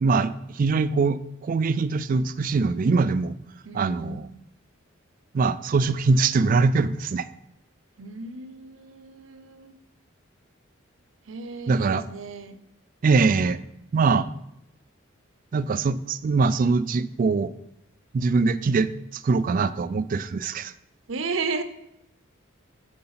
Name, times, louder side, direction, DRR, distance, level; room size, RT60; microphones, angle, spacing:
voice 1, 0.0-3.4 3.7-4.3 5.3-7.3 11.7-12.0 13.0-13.6 13.9-14.3 15.5-17.5 18.1-20.7, right 4 dB, 40° right, 15 dB, 0.3 m, -22 dB
voice 2, 3.6-4.2 8.0-9.8 11.3-12.6 21.1-21.6, right 4 dB, 70° right, 11 dB, 0.7 m, -34 dB
7.8 x 4.7 x 5.8 m, 0.82 s
head